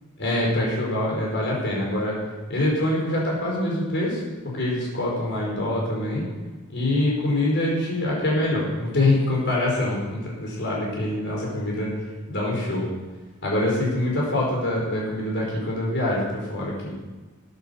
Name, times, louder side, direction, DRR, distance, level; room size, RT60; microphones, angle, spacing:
voice 1, 0.2-2.2 2.5-4.2 4.5-6.2 6.7-11.9 12.3-12.9 13.4-16.9, left 1 dB, 50° left, -3 dB, 4.9 m, -24 dB
14.0 x 9.3 x 7.0 m, 1.2 s
head